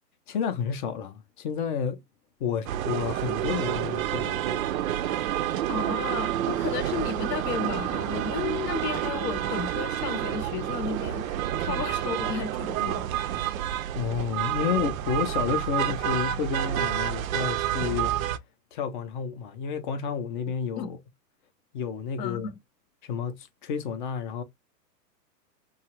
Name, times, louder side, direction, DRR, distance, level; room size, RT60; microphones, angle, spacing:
voice 1, 0.3-2.0 2.4-4.7 13.9-18.1 18.7-21.0 21.7-22.5 23.0-24.4, left 7 dB, 35° left, 0.5 m, -30 dB
sound 1, 2.7-18.4, right 11 dB, 60° right, 0.5 m, -29 dB
voice 2, 5.7-13.4 20.8-20.9 22.2-22.6, left 8 dB, 75° left, 0.7 m, -34 dB
2.9 x 2.3 x 2.8 m
hypercardioid pair, 130°, 50 cm